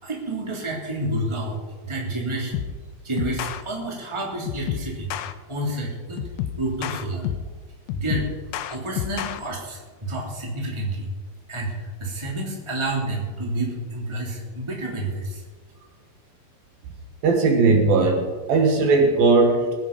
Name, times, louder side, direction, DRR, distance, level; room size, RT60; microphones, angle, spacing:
voice 1, 0.0-2.5 3.0-6.2 6.6-7.3 7.9-8.3 8.7-11.1 11.5-15.4, right 1 dB, 10° right, -1 dB, 2.4 m, -29 dB
sound 1, 2.5-2.8 3.2-3.6 4.5-5.3 6.2-7.6 7.9-9.4, left 10 dB, 90° left, 2.8 m, -30 dB
voice 2, 17.2-19.7, right 3 dB, 70° right, 4 dB, 3.1 m, -18 dB
20.0 x 9.8 x 5.4 m, 1.4 s
omnidirectional pair, 4.6 m